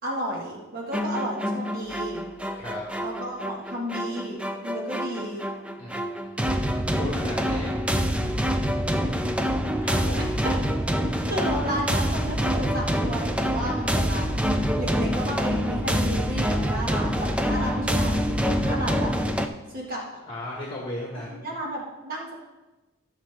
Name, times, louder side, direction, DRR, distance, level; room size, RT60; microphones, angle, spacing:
voice 1, 0.0-2.2 3.0-5.5 10.2-10.3 11.3-14.4 14.8-19.1 19.7-20.2 21.3-22.3, equal, 45° right, -3 dB, 1.8 m, -33 dB
sound 1, 0.9-19.5, equal, 5° right, 0.4 m, -26 dB
sound 2, 1.8-3.4 11.9-18.1, left 1 dB, 85° right, 2.1 m, -41 dB
voice 2, 5.8-6.3 7.0-7.8 9.8-10.3 20.3-21.5, left 1 dB, 25° left, -4 dB, 1.6 m, -36 dB
14.5 x 6.5 x 3.5 m, 1.1 s
head